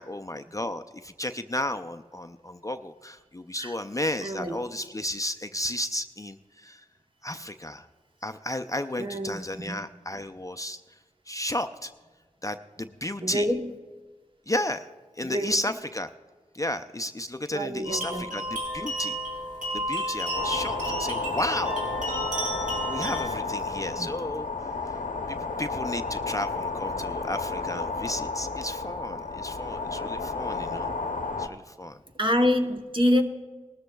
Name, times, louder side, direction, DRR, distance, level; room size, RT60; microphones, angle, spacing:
voice 1, 0.0-6.8 7.2-7.9 8.2-10.8 11.3-11.9 12.4-13.5 14.5-14.9 15.2-16.1 16.5-19.2 19.7-21.7 22.9-24.5 24.9-25.0 25.3-30.9 31.4-32.0, left 1 dB, 25° left, 9 dB, 0.4 m, -33 dB
voice 2, 4.2-4.6 9.0-9.8 13.2-13.7 15.2-15.5 17.5-18.3 24.0-24.1 32.2-33.2, equal, 40° right, 4 dB, 0.9 m, -26 dB
sound 1, 17.8-23.2, equal, 70° right, 4.6 m, -32 dB
sound 2, 20.3-31.5, left 3 dB, 80° left, 0.7 m, -32 dB
19.5 x 13.0 x 2.3 m, 1.4 s
wide cardioid pair, 55°, 13 cm